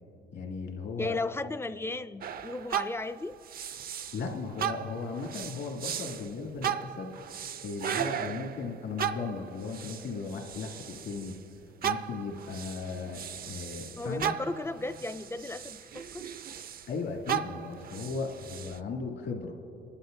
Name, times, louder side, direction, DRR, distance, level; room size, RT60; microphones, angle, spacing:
voice 1, 0.3-1.2 4.1-7.1 7.6-11.3 11.8-14.3 16.9-19.5, left 4 dB, 70° left, -1 dB, 2.3 m, -36 dB
voice 2, 1.0-3.4 14.0-16.2, left 2 dB, 10° left, 12 dB, 0.3 m, -35 dB
sound 1, 2.2-4.3 4.6-11.4 11.8-16.9 17.3-18.8, right 9 dB, 50° right, 0.4 m, -36 dB
29.0 x 11.5 x 2.6 m, 2.8 s
cardioid pair, 90°, 20 cm